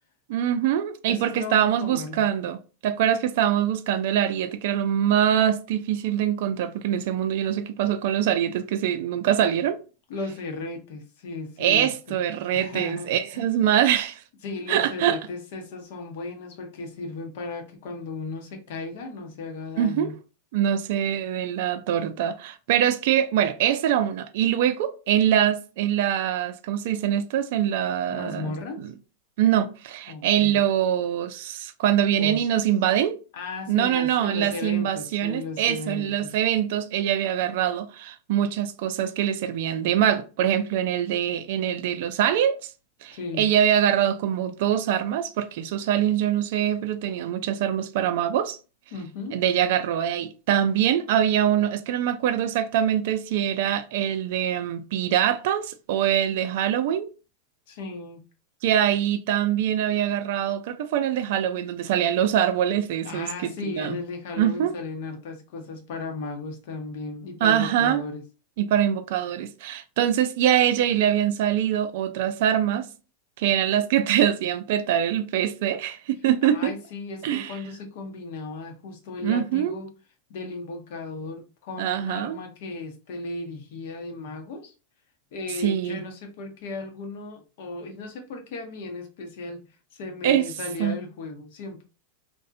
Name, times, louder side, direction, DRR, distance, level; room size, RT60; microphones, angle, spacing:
voice 1, 0.3-2.6 2.8-9.8 11.6-14.2 14.7-15.2 19.8-20.1 20.5-28.9 29.4-33.2 33.7-42.6 43.0-48.6 49.3-57.1 58.6-64.0 64.4-64.8 67.4-68.0 68.6-72.9 73.4-76.7 77.2-77.5 79.2-79.8 81.8-82.4 85.6-86.0 90.2-90.5 90.8-91.0, right 10 dB, 65° right, 0.3 m, -24 dB
voice 2, 1.1-2.2 10.1-12.2 12.5-13.5 14.4-20.1 28.1-28.8 30.1-30.6 32.2-32.6 33.3-36.4 43.1-43.5 48.9-49.4 57.7-58.2 63.0-68.2 76.4-79.9 80.3-84.7 85.3-89.6 89.9-91.8, left 3 dB, 65° left, 0.7 m, -36 dB
2.6 x 2.1 x 2.4 m
hypercardioid pair, 125°, 0 cm